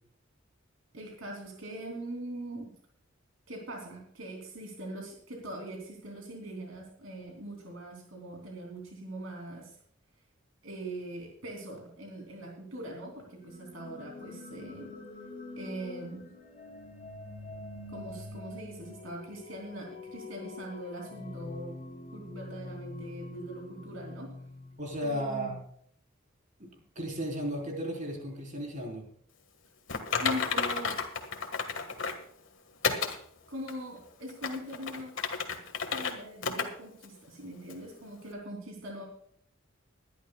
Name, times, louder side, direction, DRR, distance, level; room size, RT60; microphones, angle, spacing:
voice 1, 0.9-2.7 3.5-9.8 10.6-15.0 15.6-16.3 17.9-21.8 22.1-24.3 25.0-25.5 30.2-30.9 33.5-35.1 35.9-39.1, right 1 dB, 80° right, 0 dB, 3.3 m, -42 dB
sound 1, 13.4-25.3, left 2 dB, 35° left, 4.5 m, -45 dB
voice 2, 24.8-25.6 26.6-26.7 27.0-29.1, equal, 40° right, 0 dB, 4.2 m, -34 dB
Typing, 29.9-32.2 32.8-33.2 33.7-33.8 34.3-36.1 36.4-36.7 37.0-37.1 37.7-37.8, left 5 dB, 70° left, 1.7 m, -31 dB
21.5 x 11.5 x 2.3 m, 0.62 s
head